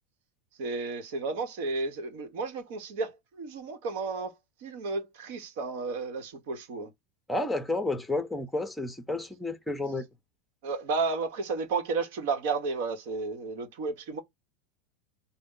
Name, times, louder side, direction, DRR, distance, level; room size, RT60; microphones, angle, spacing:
voice 1, 0.6-4.3 4.6-6.9 10.6-14.2, right 4 dB, 70° right, 1.1 m, -32 dB
voice 2, 7.3-10.0, left 2 dB, 5° left, 0.7 m, -31 dB
4.2 x 2.1 x 3.8 m
supercardioid pair, 120°, 0 cm